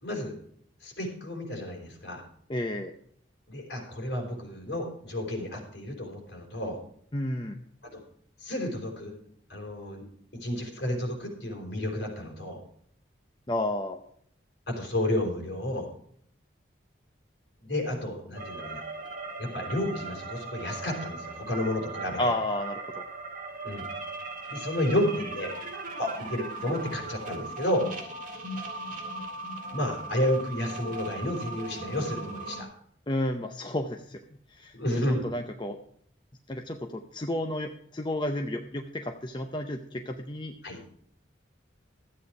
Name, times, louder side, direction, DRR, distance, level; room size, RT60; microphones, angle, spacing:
voice 1, 0.0-0.3 0.8-2.2 3.5-6.8 7.9-8.0 8.4-9.1 9.5-10.0 10.3-12.6 14.7-15.9 17.6-18.9 19.4-22.3 23.6-23.8 24.5-25.5 26.0-27.9 29.7-32.7 34.7-35.3 40.6-40.8, left 1 dB, 55° left, 1 dB, 4.4 m, -31 dB
voice 2, 2.5-2.9 7.1-7.6 13.5-14.0 22.2-22.8 33.1-34.2 34.5-34.7 35.2-35.8 36.5-40.5, left 1 dB, 25° left, 4 dB, 0.6 m, -31 dB
sound 1, 18.3-32.6, right 3 dB, 40° right, 2.1 m, -38 dB
13.5 x 8.6 x 4.8 m, 0.64 s
head